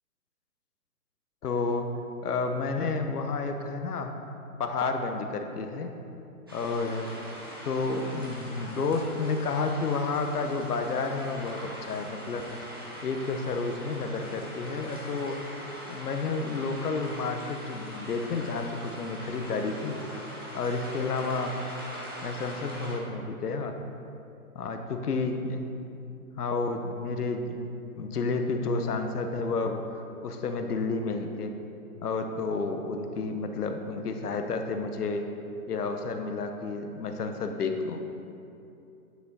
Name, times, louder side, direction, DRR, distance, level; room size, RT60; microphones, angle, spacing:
voice 1, 1.4-1.9 2.2-4.1 4.6-5.9 6.5-7.1 7.7-12.6 13.0-15.4 15.9-20.0 20.5-21.6 22.2-23.7 24.5-25.7 26.4-27.7 28.0-29.8 30.2-31.5 32.0-35.3 35.7-38.0, left 4 dB, 80° left, 5 dB, 1.0 m, -30 dB
sound 1, 6.5-23.0, equal, 15° right, 0.5 m, -42 dB
9.7 x 6.2 x 4.1 m, 2.7 s
hypercardioid pair, 165°, 45 cm